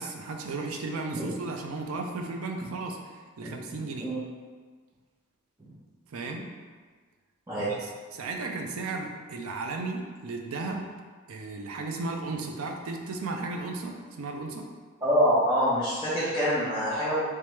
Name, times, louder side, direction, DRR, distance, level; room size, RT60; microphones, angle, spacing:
voice 1, 0.0-3.0 3.4-4.1 6.1-6.5 7.7-10.9 11.3-14.7, right 3 dB, 90° right, 3 dB, 0.5 m, -35 dB
voice 2, 15.0-17.2, equal, 15° right, -12 dB, 0.7 m, -25 dB
3.4 x 3.1 x 3.1 m, 1.5 s
head